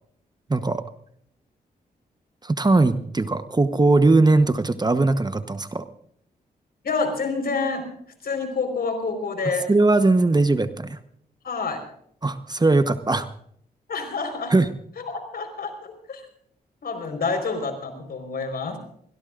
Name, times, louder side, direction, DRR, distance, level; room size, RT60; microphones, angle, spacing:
voice 1, 0.5-0.8 2.4-5.8 9.7-11.0 12.2-13.3 14.5-14.7, right 2 dB, 25° right, 11 dB, 1.0 m, -20 dB
voice 2, 6.8-7.8 8.2-9.7 11.4-11.8 13.9-14.5 15.0-16.2 16.8-18.8, left 4 dB, 65° left, 6 dB, 4.6 m, -28 dB
24.0 x 17.5 x 2.5 m, 0.66 s
cardioid pair, 55°, 17 cm